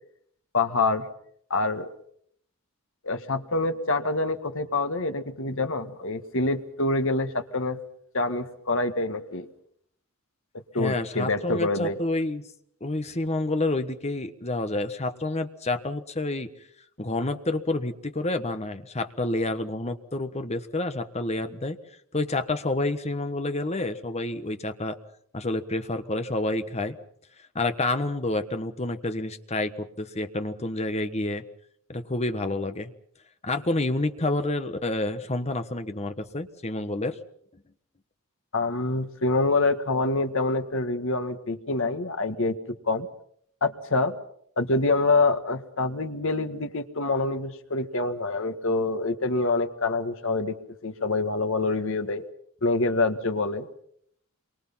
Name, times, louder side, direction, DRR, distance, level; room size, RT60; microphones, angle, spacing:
voice 1, 0.5-1.1 1.5-1.9 3.0-7.8 8.1-9.5 10.7-12.0 38.5-42.6 42.9-43.1 43.6-44.2 44.6-50.5 50.8-52.2 52.6-53.7, left 3 dB, 60° left, 8 dB, 1.8 m, -26 dB
voice 2, 10.8-12.4 12.8-16.5 17.0-21.8 22.1-25.0 25.3-27.0 27.5-31.4 31.9-32.9 33.4-37.2, left 2 dB, 30° left, 9 dB, 1.3 m, -29 dB
27.0 x 23.5 x 5.8 m, 0.67 s
head